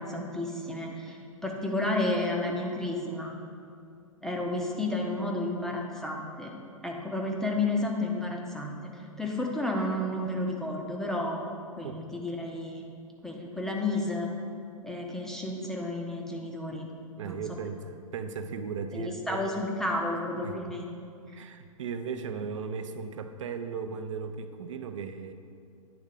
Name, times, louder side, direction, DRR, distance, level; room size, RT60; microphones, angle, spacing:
voice 1, 0.0-3.3 4.2-6.5 6.8-12.9 13.2-14.3 14.8-16.9 17.2-17.4 18.9-20.9 21.4-21.5, left 2 dB, 5° left, -1 dB, 0.5 m, -32 dB
voice 2, 17.2-19.4 20.4-20.6 21.3-25.3, right 5 dB, 60° right, 9 dB, 0.5 m, -36 dB
9.4 x 3.5 x 3.7 m, 2.4 s
figure-of-eight pair, 105°, 18 cm